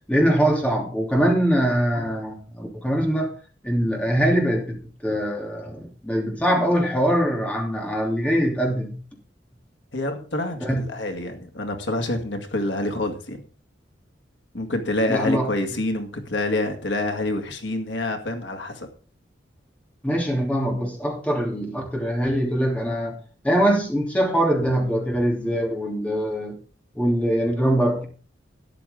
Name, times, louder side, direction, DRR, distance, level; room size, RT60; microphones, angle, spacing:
voice 1, 0.1-3.3 3.6-4.7 5.0-9.0 10.6-10.9 15.1-15.5 20.0-23.2 23.4-26.6 26.9-28.0, equal, 5° left, 3.1 m, -22 dB
voice 2, 9.9-13.4 14.5-18.9, left 2 dB, 85° left, 2.1 m, -27 dB
13.0 x 9.9 x 3.7 m
head